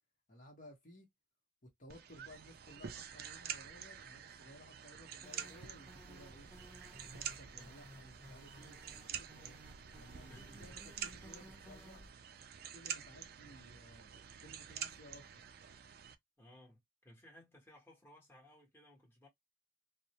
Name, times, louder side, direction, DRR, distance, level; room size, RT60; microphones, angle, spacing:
voice 1, 0.3-1.1 1.6-6.5 7.0-9.6 10.0-12.0 12.7-15.4, equal, 45° left, 1.0 m, -58 dB
sound 1, 1.9-16.1, right 9 dB, 55° right, 0.4 m, -48 dB
sound 2, 5.2-12.1, equal, 10° right, 0.9 m, -57 dB
voice 2, 10.3-10.9 16.4-19.3, left 1 dB, 10° left, 1.1 m, -60 dB
2.5 x 2.1 x 2.8 m
head